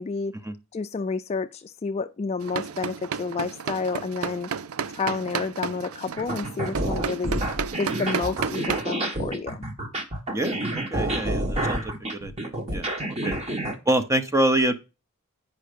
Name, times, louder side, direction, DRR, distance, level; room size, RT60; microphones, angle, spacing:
voice 1, 0.0-0.3 0.7-4.5 4.9-7.4 7.8-9.6 13.0-13.3, left 4 dB, 30° left, 0.3 m, -30 dB
sound 1, 2.4-8.8, right 6 dB, 80° right, 0.5 m, -32 dB
sound 2, 6.2-13.7, right 1 dB, 30° right, 1.3 m, -29 dB
voice 2, 10.3-12.9 13.2-13.3 13.9-14.8, right 1 dB, 15° right, 0.7 m, -26 dB
9.0 x 5.4 x 5.0 m
head